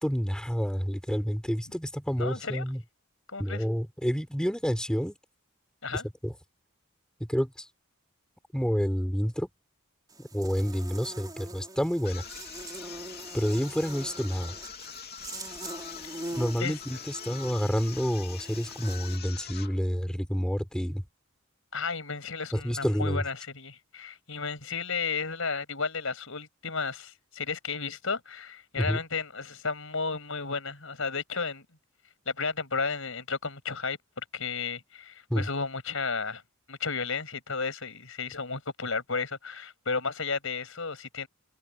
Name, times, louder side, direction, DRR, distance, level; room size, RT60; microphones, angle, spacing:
voice 1, 0.0-2.8 3.4-5.2 5.9-6.3 7.2-7.7 8.5-9.5 10.2-12.2 13.3-14.5 16.3-21.0 22.5-23.2 28.8-29.0 35.3-35.5, equal, 5° left, 4.4 m, -29 dB
voice 2, 2.2-2.6 3.3-3.6 5.8-6.0 16.6-17.0 21.7-31.6 32.2-34.0 34.3-36.4 36.7-41.3, left 4 dB, 70° left, 6.8 m, -33 dB
Buzz, 10.1-19.2, right 2 dB, 20° right, 4.6 m, -43 dB
sound 1, 12.0-19.8, left 8 dB, 50° left, 2.9 m, -44 dB
head